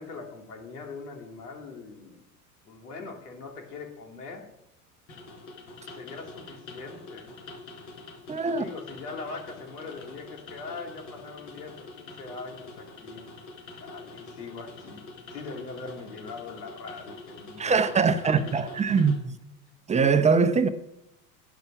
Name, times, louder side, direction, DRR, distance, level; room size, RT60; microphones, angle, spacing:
voice 1, 0.0-2.2 2.6-4.4 5.8-7.4 8.5-13.3 13.7-18.6 18.9-19.1, left 4 dB, 75° left, 3.0 m, -41 dB
sound 1, 5.1-19.2, left 3 dB, 55° left, 4.7 m, -46 dB
voice 2, 8.3-8.6 17.6-19.4 19.9-20.7, right 5 dB, 15° right, 0.8 m, -22 dB
11.0 x 9.0 x 5.9 m
hypercardioid pair, 90°, 47 cm